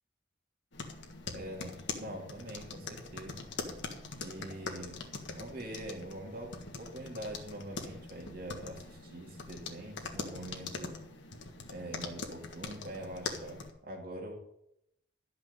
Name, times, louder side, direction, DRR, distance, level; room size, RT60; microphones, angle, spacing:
sound 1, 0.7-13.7, left 3 dB, 60° left, 1.6 m, -43 dB
voice 1, 1.3-3.5 4.2-11.0 11.7-14.4, right 1 dB, 50° right, 0 dB, 2.4 m, -44 dB
13.0 x 6.0 x 8.2 m, 0.79 s
head